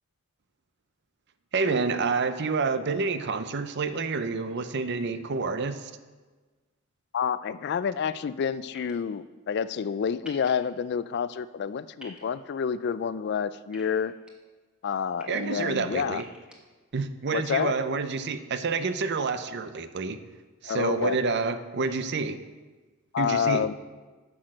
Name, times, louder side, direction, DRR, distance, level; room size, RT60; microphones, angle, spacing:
voice 1, 1.5-5.9 15.3-16.2 16.9-20.2 20.6-22.4 23.2-23.7, right 4 dB, 55° right, 11 dB, 0.6 m, -28 dB
voice 2, 7.1-14.1 14.8-16.2 17.3-17.8 20.6-21.2 23.1-23.7, left 7 dB, 50° left, 15 dB, 0.3 m, -28 dB
sound 1, 8.7-8.9 10.2-10.5 12.0-12.2 13.7-14.3 14.9-15.2 16.1-16.6, left 1 dB, 5° right, 1.3 m, -47 dB
10.0 x 6.2 x 6.4 m, 1.3 s
head